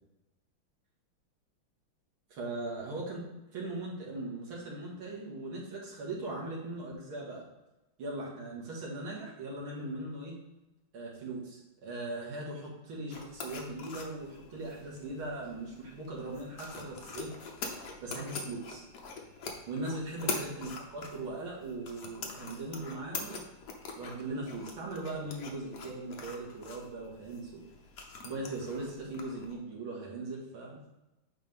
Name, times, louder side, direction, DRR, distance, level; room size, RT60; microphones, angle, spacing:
voice 1, 2.3-3.2 3.5-7.4 8.0-10.4 10.9-17.3 18.0-18.8 19.7-23.4 24.0-27.6 28.2-30.8, right 2 dB, 80° right, -4 dB, 2.8 m, -39 dB
sound 1, 13.1-29.5, left 4 dB, 60° left, 1.4 m, -44 dB
10.0 x 3.7 x 3.6 m, 0.99 s
omnidirectional pair, 2.3 m